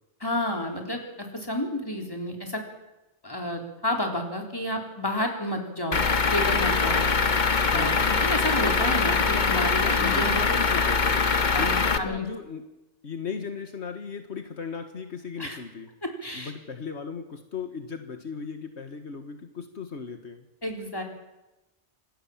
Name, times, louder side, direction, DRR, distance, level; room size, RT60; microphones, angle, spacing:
voice 1, 0.2-2.6 3.2-7.1 7.7-10.4 11.5-12.3 15.4-15.6 16.2-16.5 20.6-21.0, left 1 dB, 20° left, 2 dB, 4.1 m, -30 dB
Truck / Idling, 5.9-12.0, left 4 dB, 45° left, 1.3 m, -23 dB
voice 2, 7.7-8.2 9.8-11.2 11.5-12.6 13.0-15.9 16.3-20.5, left 5 dB, 75° left, 7 dB, 1.9 m, -37 dB
26.5 x 18.0 x 7.3 m, 1.0 s
omnidirectional pair, 1.2 m